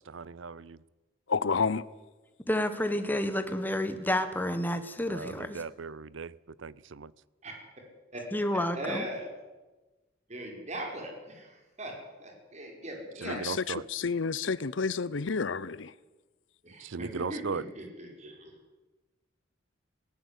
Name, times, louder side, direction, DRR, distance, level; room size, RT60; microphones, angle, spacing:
voice 1, 0.1-0.8 5.1-7.1 13.2-13.9 16.8-17.7, right 5 dB, 75° right, 0.6 m, -38 dB
voice 2, 1.3-1.9 13.2-15.9, left 5 dB, 75° left, 0.7 m, -30 dB
voice 3, 2.5-5.6 8.3-9.1, left 1 dB, 10° left, 1.5 m, -30 dB
voice 4, 8.7-9.3 10.3-11.5 11.8-11.9 12.2-13.4 16.6-18.5, right 1 dB, 35° right, 5.1 m, -39 dB
18.5 x 18.0 x 8.3 m
head